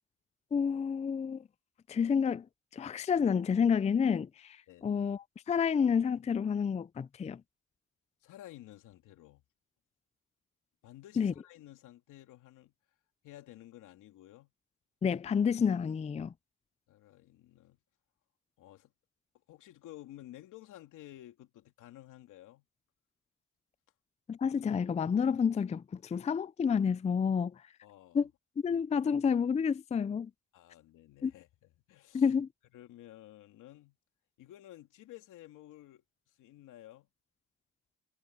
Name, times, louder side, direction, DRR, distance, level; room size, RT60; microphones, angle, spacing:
voice 1, 0.5-1.4 1.9-2.4 2.7-4.6 4.8-7.4 11.2-11.3 15.0-16.3 24.3-27.5 28.1-28.3 28.6-30.3 31.2-31.3 32.1-32.5, left 6 dB, 25° left, 0.4 m, -29 dB
voice 2, 8.2-9.4 10.8-12.7 13.2-14.5 16.9-17.8 18.6-18.9 19.5-22.6 27.8-28.3 30.5-32.3 32.7-34.0 34.4-37.1, left 14 dB, 85° left, 2.9 m, -53 dB
cardioid pair, 90°, 30 cm